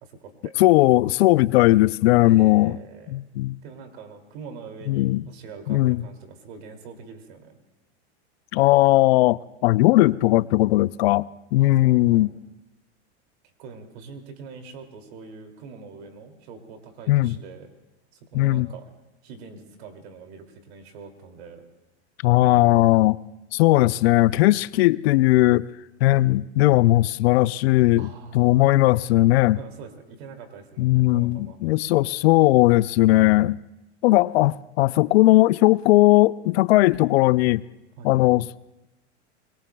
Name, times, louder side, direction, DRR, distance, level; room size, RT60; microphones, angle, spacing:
voice 1, 0.0-0.6 2.3-3.2 3.6-7.5 11.6-12.3 13.4-17.7 18.1-18.9 19.2-21.7 28.0-28.6 29.6-31.6 38.0-38.3, right 5 dB, 65° right, 2.7 m, -43 dB
voice 2, 0.6-2.8 3.1-3.6 4.9-5.2 5.7-6.0 8.5-12.3 17.1-17.3 18.3-18.7 22.2-23.2 23.5-25.7 26.0-28.1 28.3-29.6 30.8-33.6 34.0-37.6 38.0-38.5, left 17 dB, 65° left, 0.5 m, -18 dB
25.5 x 22.5 x 2.3 m
hypercardioid pair, 120°, 34 cm